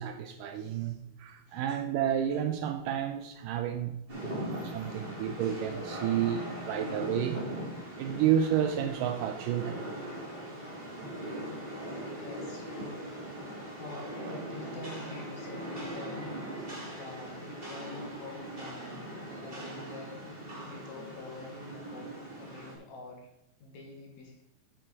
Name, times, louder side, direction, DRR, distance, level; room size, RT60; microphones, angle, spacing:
voice 1, 0.0-3.9 4.2-7.4 8.0-9.9, right 9 dB, 80° right, 2.0 m, -31 dB
Rain, 4.1-22.7, right 1 dB, 15° right, 3.1 m, -40 dB
voice 2, 12.2-13.1 13.8-16.4 17.0-19.0 19.4-20.2 20.7-23.3 23.6-24.4, left 3 dB, 60° left, 2.3 m, -46 dB
8.9 x 7.7 x 4.7 m
omnidirectional pair, 4.2 m